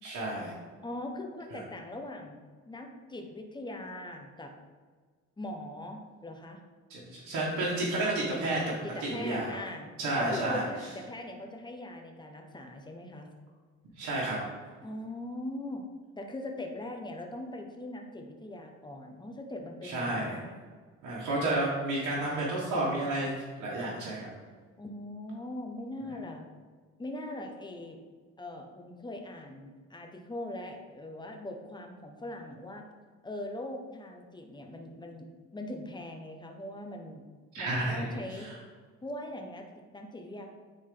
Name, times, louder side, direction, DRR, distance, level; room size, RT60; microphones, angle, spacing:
voice 1, 0.0-0.5 1.5-1.6 6.9-8.6 9.1-9.6 10.0-10.6 14.0-14.4 19.8-20.4 21.0-24.3 37.5-38.5, right 2 dB, 85° right, -6 dB, 1.6 m, -31 dB
voice 2, 0.8-2.4 2.6-4.5 5.4-6.6 8.8-9.9 10.1-13.3 14.8-15.8 16.2-20.6 24.8-26.5 27.0-28.0 28.4-32.8 33.2-37.2 37.6-38.5 39.0-40.5, left 1 dB, 15° left, 3 dB, 1.1 m, -41 dB
9.6 x 4.0 x 3.9 m, 1.5 s
cardioid pair, 90°, 30 cm